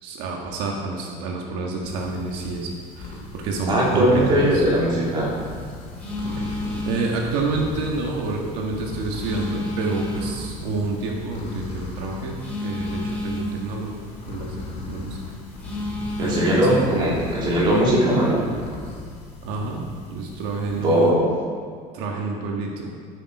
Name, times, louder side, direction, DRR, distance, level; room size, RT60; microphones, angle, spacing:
voice 1, 0.0-4.6 6.4-12.3 12.6-14.0 14.3-15.2 16.2-16.9 19.4-19.8 20.1-21.1 21.9-22.9, right 3 dB, 85° right, 0 dB, 1.7 m, -29 dB
sound 1, 1.8-21.1, left 3 dB, 45° left, 3.5 m, -37 dB
voice 2, 3.7-5.3 16.2-18.4 20.8-21.3, right 1 dB, 35° right, -5 dB, 3.4 m, -19 dB
Telephone, 5.0-17.8, left 1 dB, 10° left, 3.6 m, -34 dB
12.5 x 9.0 x 5.0 m, 2.1 s
cardioid pair, 160°, 15 cm